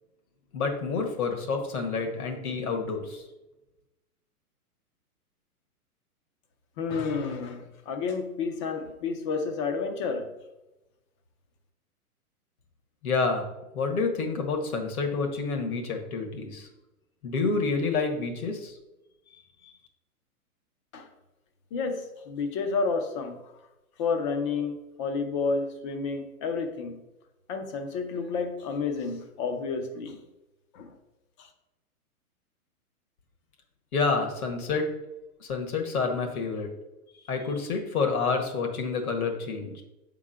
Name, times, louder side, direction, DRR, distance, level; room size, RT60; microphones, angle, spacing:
voice 1, 0.5-3.2 13.0-13.5 13.7-16.7 17.2-18.8 19.6-19.7 33.9-34.9 35.4-36.7 37.3-39.8, left 4 dB, 70° left, 4 dB, 1.6 m, -28 dB
voice 2, 6.8-10.3 20.9-21.1 21.7-23.4 24.0-27.0 27.5-30.2 30.7-30.9 31.4-31.5, left 4 dB, 20° left, 5 dB, 0.5 m, -30 dB
7.1 x 3.7 x 5.6 m, 0.99 s
hypercardioid pair, 145°, 45 cm